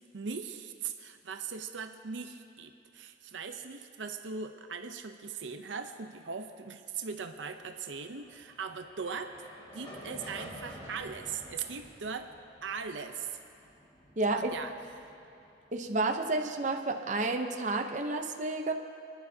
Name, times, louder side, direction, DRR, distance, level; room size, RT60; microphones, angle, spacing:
voice 1, 0.1-9.5 9.7-12.3 12.6-13.4 14.3-15.1, right 5 dB, 85° right, 7 dB, 0.6 m, -40 dB
sound 1, 7.9-16.3, equal, 25° left, 1.8 m, -50 dB
voice 2, 14.2-14.5 15.7-18.7, right 2 dB, 40° right, 4 dB, 0.7 m, -30 dB
27.5 x 11.0 x 2.7 m, 2.5 s
head